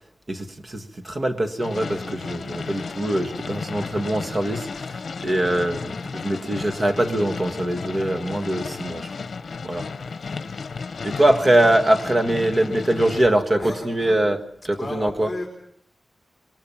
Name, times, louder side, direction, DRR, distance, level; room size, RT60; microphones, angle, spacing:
voice 1, 0.3-9.1 9.6-9.9 11.0-14.4 14.7-15.3, right 1 dB, 35° right, 1.7 m, -23 dB
sound 1, 1.6-13.2, left 4 dB, 65° left, 1.0 m, -33 dB
voice 2, 13.6-14.3 14.8-15.5, left 2 dB, 20° left, 4.0 m, -34 dB
26.5 x 21.0 x 7.3 m
wide cardioid pair, 110°, 0 cm